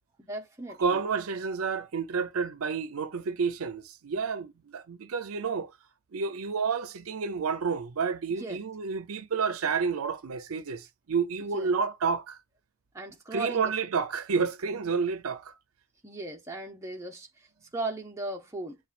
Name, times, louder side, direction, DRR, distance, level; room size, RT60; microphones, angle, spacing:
voice 1, 0.2-1.0 8.4-8.6 11.5-11.7 12.9-13.7 16.0-18.8, right 2 dB, 15° right, 0.7 m, -37 dB
voice 2, 0.8-5.7 6.1-12.4 13.3-15.5, right 5 dB, 85° right, 0.6 m, -30 dB
7.0 x 2.4 x 2.4 m
head